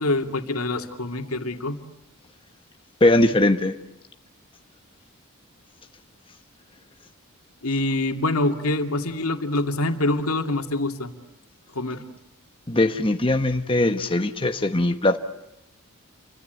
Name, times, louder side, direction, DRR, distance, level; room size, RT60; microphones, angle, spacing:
voice 1, 0.0-1.8 7.6-11.1 11.7-12.0, left 2 dB, 80° left, 5 dB, 2.6 m, -25 dB
voice 2, 3.0-3.7 12.7-15.2, left 1 dB, 25° left, 6 dB, 1.1 m, -20 dB
29.0 x 24.5 x 8.1 m, 0.84 s
head